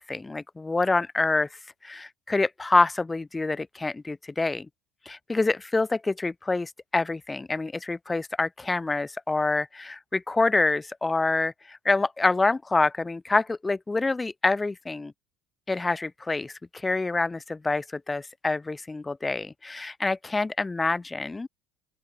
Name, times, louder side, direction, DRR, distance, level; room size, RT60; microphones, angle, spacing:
voice 1, 0.0-1.5 1.8-4.7 5.1-15.1 15.7-21.5, left 3 dB, 15° left, 4.2 m, -26 dB
open air
supercardioid pair, 90°, 0 cm